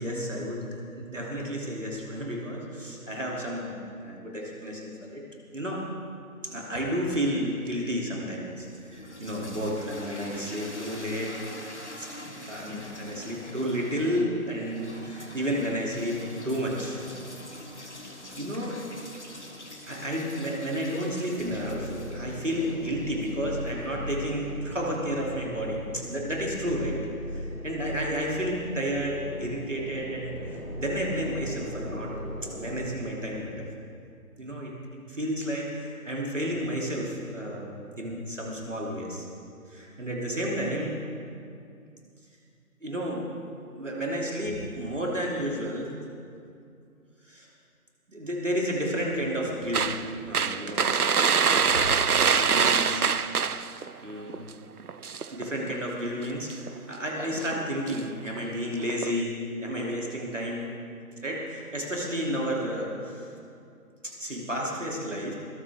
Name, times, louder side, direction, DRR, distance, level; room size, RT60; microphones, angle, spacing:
voice 1, 0.0-5.2 5.5-5.8 6.4-11.6 12.0-12.1 12.5-17.0 17.8-17.9 18.3-18.8 19.9-27.0 27.3-32.1 32.4-33.7 34.4-39.3 39.7-41.0 42.8-43.2 43.8-46.0 47.2-47.5 48.1-51.0 51.7-51.8 52.2-53.1 53.4-53.6 54.0-54.5 55.3-60.7 61.2-63.3 64.0-65.3, equal, 55° right, -2 dB, 2.9 m, -31 dB
sound 1, 8.5-24.6, left 1 dB, 50° left, 1.4 m, -44 dB
sound 2, 21.4-32.8, equal, 70° left, 3.6 m, -38 dB
sound 3, 49.7-53.9 54.3-54.5 54.8-55.8 56.5-56.8 57.3-58.0 58.3-58.4 58.9-59.2, right 6 dB, 75° right, 0.6 m, -24 dB
20.5 x 13.5 x 3.6 m, 2.4 s
figure-of-eight pair, 180°, 45 cm